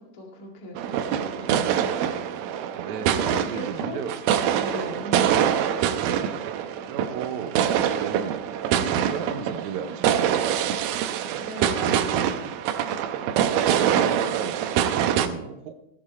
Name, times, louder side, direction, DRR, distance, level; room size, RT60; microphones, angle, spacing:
voice 1, 0.0-1.8 3.1-4.0 4.6-5.5 11.3-12.5, left 1 dB, 30° left, -1 dB, 2.2 m, -38 dB
sound 1, 0.8-15.3, right 9 dB, 85° right, 2.5 m, -25 dB
voice 2, 2.8-4.2 6.9-8.4 8.7-10.8 13.4-15.8, right 7 dB, 70° right, 7 dB, 1.9 m, -35 dB
17.0 x 7.3 x 4.3 m, 0.85 s
omnidirectional pair, 4.1 m